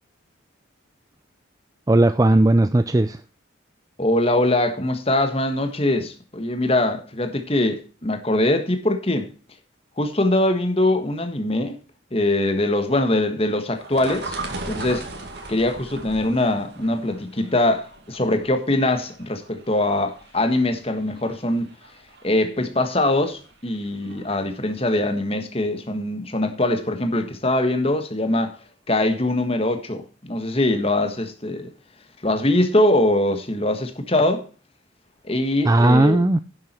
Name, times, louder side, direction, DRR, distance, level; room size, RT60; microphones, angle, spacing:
voice 1, 1.9-3.2 35.6-36.4, right 1 dB, 15° right, 0.4 m, -16 dB
voice 2, 4.0-9.3 10.0-11.8 12.1-15.1 15.5-21.7 22.2-28.5 28.9-31.7 32.2-34.4 35.2-36.2, left 1 dB, 30° left, 1.5 m, -22 dB
sound 1, 13.8-24.6 24.9-25.0, right 2 dB, 55° right, 2.2 m, -38 dB
10.5 x 7.4 x 4.5 m
head